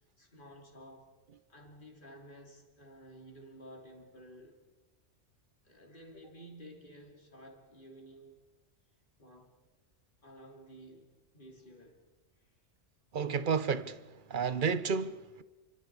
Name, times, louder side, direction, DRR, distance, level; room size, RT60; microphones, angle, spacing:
voice 1, 0.2-1.1 1.5-4.6 5.6-8.4 9.2-9.6 10.2-11.1 11.3-12.0 12.4-12.5, equal, 45° left, 3.4 m, -53 dB
voice 2, 13.1-14.0 14.3-15.4, right 6 dB, 50° right, 1.0 m, -31 dB
29.5 x 25.0 x 4.8 m
omnidirectional pair, 1.2 m